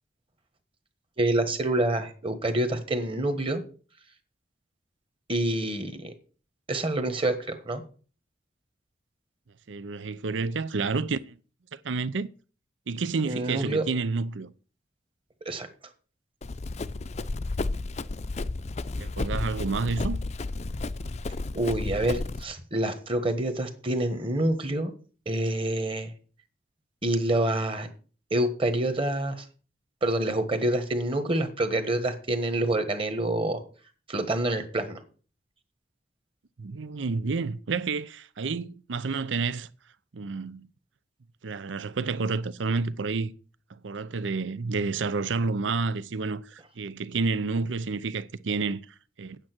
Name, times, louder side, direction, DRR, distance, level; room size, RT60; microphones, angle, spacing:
voice 1, 1.2-3.6 5.3-6.1 6.7-7.8 13.3-13.8 15.4-15.7 21.5-24.9 25.2-26.1 27.0-27.9 28.3-29.4 30.0-33.6 34.1-35.0, right 1 dB, 30° right, 1.4 m, -27 dB
voice 2, 9.7-11.4 11.8-12.3 12.9-14.5 19.0-20.2 36.6-39.7 40.1-40.7 41.4-43.3 43.7-49.4, right 4 dB, 85° right, 0.6 m, -30 dB
Run, 16.4-22.4, left 2 dB, 35° left, 0.5 m, -32 dB
8.9 x 8.7 x 6.1 m
head